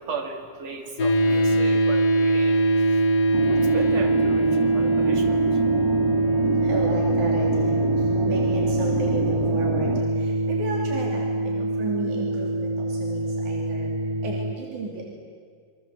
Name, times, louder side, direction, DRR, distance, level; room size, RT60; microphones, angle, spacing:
voice 1, 0.0-2.7 3.4-5.4, right 4 dB, 60° right, 2 dB, 3.9 m, -35 dB
sound 1, 1.0-14.5, right 1 dB, 65° left, 1.0 m, -23 dB
sound 2, 3.3-10.0, right 7 dB, 45° right, 2.1 m, -30 dB
voice 2, 6.6-7.8 8.2-14.0 14.2-15.1, right 2 dB, 90° right, -2 dB, 4.6 m, -33 dB
29.0 x 24.0 x 7.9 m, 2.1 s
omnidirectional pair, 3.4 m